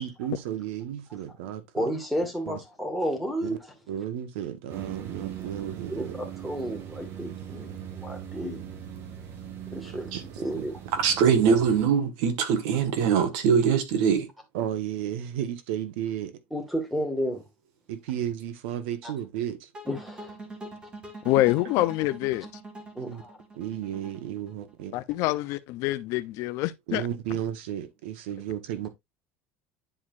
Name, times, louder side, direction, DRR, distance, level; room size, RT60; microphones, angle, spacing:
voice 1, 0.0-1.9 2.5-2.6 3.4-3.6 3.9-6.2 9.8-10.0 10.5-10.6 14.5-16.3 17.9-19.7 23.0-23.2 23.5-25.0 26.9-28.9, right 10 dB, 90° right, 1.3 m, -33 dB
voice 2, 1.7-3.6 5.9-8.6 9.7-10.7 16.5-17.4 19.0-19.1 19.9-20.3 23.0-23.4, equal, ahead, 1.8 m, -32 dB
sound 1, 4.7-11.9, right 9 dB, 40° right, 1.5 m, -40 dB
voice 3, 11.0-14.3, right 7 dB, 70° right, 1.7 m, -22 dB
sound 2, 19.7-24.8, right 2 dB, 15° right, 2.0 m, -43 dB
voice 4, 21.2-22.5 24.9-27.0, left 17 dB, 55° left, 0.6 m, -26 dB
9.8 x 4.8 x 2.5 m
cardioid pair, 155°, 6 cm